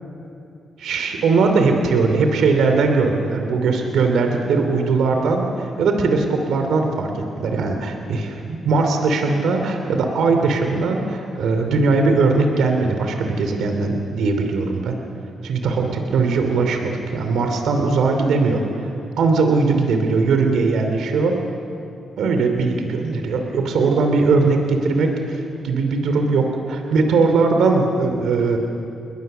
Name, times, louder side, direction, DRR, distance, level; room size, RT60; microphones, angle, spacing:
voice 1, 0.8-7.1 7.4-15.0 15.4-18.9 19.2-21.4 22.2-28.6, right 4 dB, 80° right, 4 dB, 2.8 m, -19 dB
29.0 x 21.0 x 6.8 m, 2.7 s
supercardioid pair, 65°, 0 cm